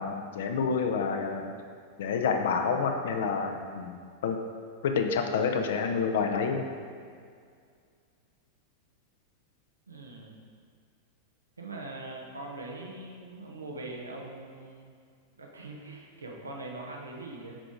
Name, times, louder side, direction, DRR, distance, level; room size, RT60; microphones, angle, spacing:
voice 1, 0.0-1.5 2.0-4.4 4.8-6.7, left 5 dB, 60° left, 5 dB, 0.6 m, -28 dB
voice 2, 9.9-10.4 11.6-14.9 15.4-17.6, right 2 dB, 75° right, 0 dB, 0.9 m, -42 dB
7.4 x 5.0 x 3.7 m, 2.1 s
figure-of-eight pair, 90°, 0 cm